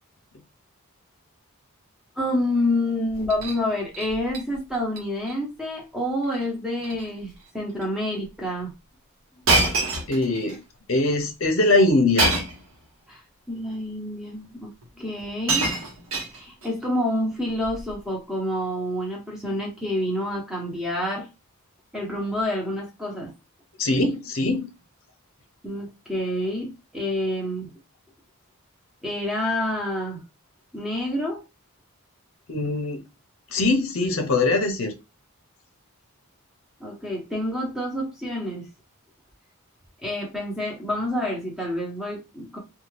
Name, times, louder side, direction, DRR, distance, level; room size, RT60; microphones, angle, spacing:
voice 1, 2.2-8.7 13.1-13.2 13.5-15.7 16.3-21.3 21.9-23.3 25.6-27.7 29.0-30.2 30.7-31.4 36.8-38.7 40.0-42.6, left 1 dB, ahead, 0.8 m, -28 dB
Shatter, 3.1-3.6 3.9-4.4 4.7-5.0 5.3-5.4 6.2-6.5 6.8-7.1 7.8-7.9 9.5-10.6 12.2-12.7 13.7-13.8 14.8-14.9 15.2-16.7 17.6-17.9, right 2 dB, 65° right, 0.9 m, -25 dB
voice 2, 10.1-10.6 10.9-12.4 23.8-24.7 32.5-33.0 33.5-34.9, left 2 dB, 60° left, 0.7 m, -22 dB
2.7 x 2.3 x 3.2 m
head